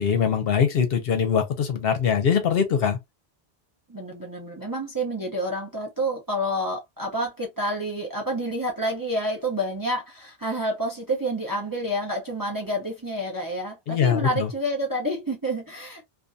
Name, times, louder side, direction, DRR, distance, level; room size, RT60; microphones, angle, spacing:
voice 1, 0.0-3.0 13.9-14.5, left 7 dB, 65° left, 0.9 m, -22 dB
voice 2, 3.9-16.0, equal, 25° right, 0.6 m, -28 dB
2.6 x 2.5 x 2.2 m
omnidirectional pair, 1.1 m